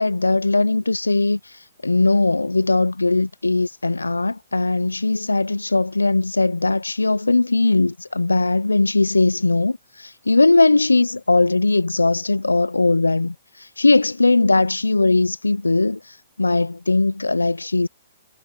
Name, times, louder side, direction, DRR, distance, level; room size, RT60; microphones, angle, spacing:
voice 1, 0.0-17.9, left 2 dB, 90° left, 0.6 m, -19 dB
figure-of-eight pair, 120°, 0 cm